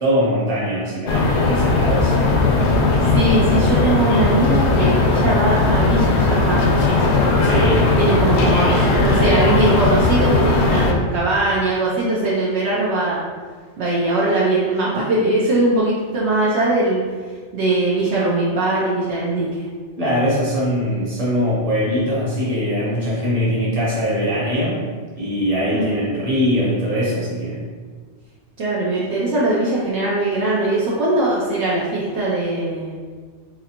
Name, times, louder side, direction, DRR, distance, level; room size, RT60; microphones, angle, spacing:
voice 1, 0.0-2.4 7.4-8.1 20.0-24.8 25.2-27.6, equal, 35° right, -8 dB, 1.2 m, -22 dB
sound 1, 1.1-10.9, left 3 dB, 75° left, 0.8 m, -17 dB
voice 2, 3.0-6.9 8.0-13.2 13.8-17.0 17.5-19.7 25.7-26.1 28.6-33.0, right 2 dB, 70° right, -6 dB, 0.9 m, -20 dB
4.1 x 2.6 x 2.8 m, 1.5 s
omnidirectional pair, 1.2 m